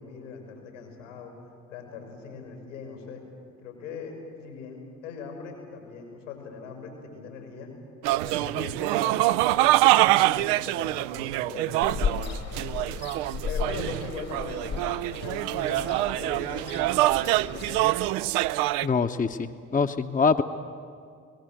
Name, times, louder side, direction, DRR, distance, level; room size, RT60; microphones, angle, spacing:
voice 1, 0.0-1.3 1.7-3.2 3.6-7.7 8.1-13.1 13.4-16.7 17.0-18.1, left 5 dB, 85° left, 2 dB, 5.8 m, -41 dB
sound 1, 8.0-18.9, right 17 dB, 65° right, 0.5 m, -25 dB
Ocean, 11.8-18.1, left 6 dB, 45° left, 1.6 m, -35 dB
voice 2, 18.8-20.4, left 5 dB, 20° left, 7 dB, 1.0 m, -24 dB
25.0 x 19.5 x 7.9 m, 2.2 s
figure-of-eight pair, 45°, 36 cm